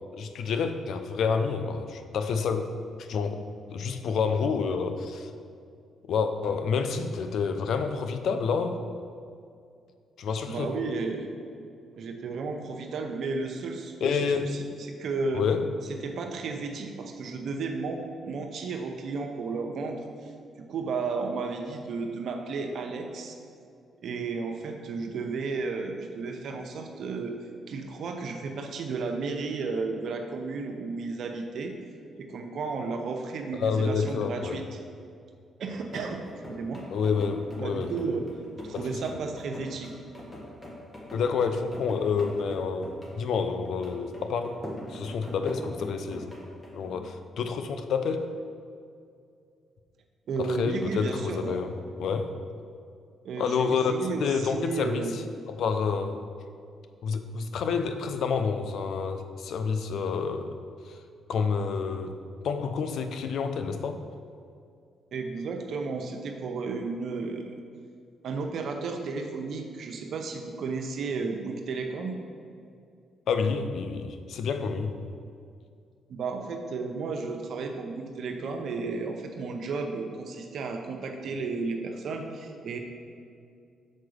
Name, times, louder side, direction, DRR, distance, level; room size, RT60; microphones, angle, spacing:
voice 1, 0.1-2.7 3.0-3.4 3.7-5.3 6.0-8.8 10.2-10.7 14.0-14.5 15.3-15.7 33.6-34.6 36.9-37.9 38.7-38.9 41.1-44.6 44.9-46.3 46.7-48.3 50.4-51.7 52.0-52.3 53.4-53.9 54.2-55.2 55.5-56.2 57.0-60.5 60.9-61.0 61.3-62.2 62.4-64.0 73.3-74.9, left 5 dB, 70° left, 8 dB, 0.6 m, -28 dB
voice 2, 10.5-11.3 12.0-15.5 16.0-23.4 24.0-27.3 27.7-31.7 32.2-34.8 35.6-36.2 36.5-36.8 37.6-38.3 38.6-39.9 50.3-51.6 53.2-55.2 65.1-67.5 68.2-72.2 76.1-82.8, right 4 dB, 65° right, 4 dB, 0.7 m, -33 dB
sound 1, 35.9-46.8, equal, 25° left, 1.7 m, -42 dB
6.4 x 4.7 x 6.4 m, 2.4 s
cardioid pair, 75°, 0 cm